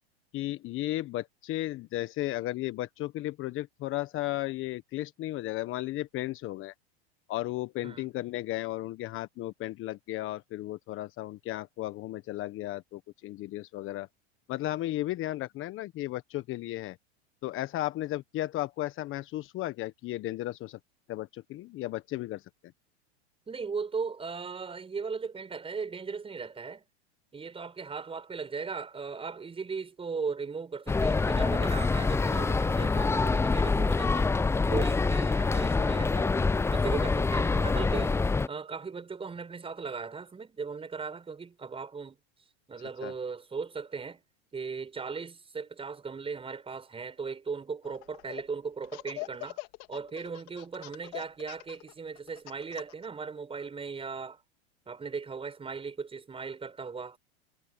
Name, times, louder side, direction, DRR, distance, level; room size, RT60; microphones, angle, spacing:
voice 1, 0.3-6.7 7.3-14.1 14.5-17.0 17.4-20.8 21.1-22.4 43.0-43.1, left 16 dB, 40° left, 1.3 m, -34 dB
voice 2, 23.5-26.8 27.3-34.3 34.7-36.4 36.7-38.2 38.5-42.2 42.7-44.2 44.5-49.6 49.9-54.4 54.9-57.2, right 5 dB, 15° right, 6.5 m, -37 dB
sound 1, 30.9-38.5, left 4 dB, 10° left, 0.6 m, -26 dB
Laughter, 47.8-48.4 48.8-53.1, left 26 dB, 55° left, 2.3 m, -42 dB
hypercardioid pair, 110°, 32 cm